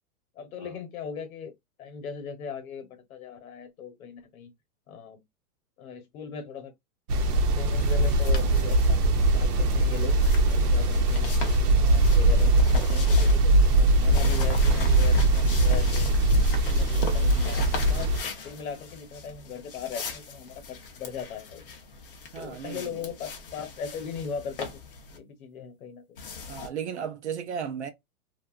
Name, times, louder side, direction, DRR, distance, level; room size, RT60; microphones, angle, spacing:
voice 1, 0.3-1.5 1.8-4.5 4.9-5.2 5.8-6.7 7.6-9.0 9.3-10.2 10.5-11.4 11.8-16.1 16.5-18.1 18.4-21.6 22.4-24.8 25.1-26.2, left 7 dB, 65° left, 1.0 m, -39 dB
sound 1, 7.1-18.2, right 2 dB, 90° right, 0.8 m, -21 dB
sound 2, 7.8-25.2 26.2-26.7, left 5 dB, 40° left, 0.5 m, -40 dB
voice 2, 22.3-23.1 26.5-27.9, right 7 dB, 50° right, 0.5 m, -35 dB
2.6 x 2.4 x 2.3 m
hypercardioid pair, 170°, 45 cm